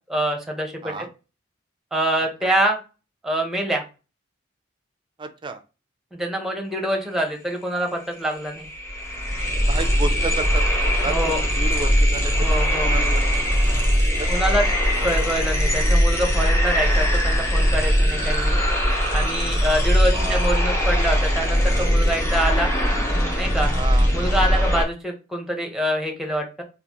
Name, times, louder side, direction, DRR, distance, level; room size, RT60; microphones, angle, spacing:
voice 1, 0.1-0.9 1.9-2.8 3.2-3.8 6.1-8.7 11.0-11.4 12.4-12.9 14.3-14.7 15.0-18.6 19.1-22.7 23.3-23.7 24.1-26.6, right 1 dB, ahead, 2 dB, 0.8 m, -25 dB
voice 2, 5.2-5.6 9.7-10.6 10.9-13.2 14.2-14.5 19.7-20.4 23.7-24.1, right 3 dB, 25° right, 8 dB, 0.4 m, -32 dB
sound 1, 7.8-7.9 8.2-24.8, equal, 15° left, 1.0 m, -20 dB
3.9 x 2.4 x 2.9 m, 0.31 s
head